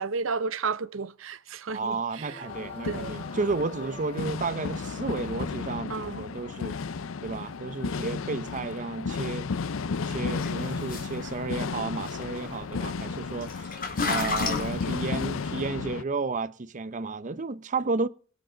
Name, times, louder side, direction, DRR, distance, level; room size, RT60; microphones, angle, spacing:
voice 1, 0.0-2.5 2.8-3.2 3.8-4.0 5.9-6.3, right 4 dB, 75° right, 0.7 m, -33 dB
voice 2, 1.7-6.7 7.2-9.5 10.1-13.8 14.0-18.1, right 3 dB, 40° right, 0.6 m, -32 dB
sound 1, 2.2-7.4, left 2 dB, 30° left, 1.9 m, -49 dB
sound 2, 2.5-16.0, left 4 dB, 80° left, 0.5 m, -33 dB
sound 3, 10.3-15.6, left 4 dB, 45° left, 4.1 m, -35 dB
23.0 x 7.9 x 3.9 m
head